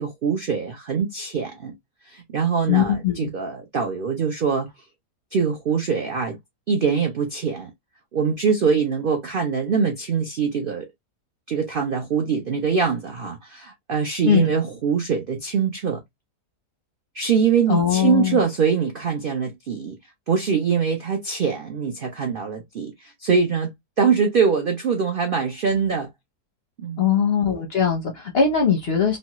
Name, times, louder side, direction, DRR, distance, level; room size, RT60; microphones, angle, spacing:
voice 1, 0.0-1.7 2.1-4.7 5.3-6.4 6.7-7.7 8.1-10.9 11.5-16.0 17.1-20.0 20.3-26.1 26.8-27.1, right 6 dB, 75° right, 0.5 m, -23 dB
voice 2, 2.7-3.3 14.2-14.5 17.7-18.4 27.0-29.2, left 7 dB, 60° left, 0.6 m, -20 dB
3.1 x 2.2 x 2.8 m
omnidirectional pair, 1.7 m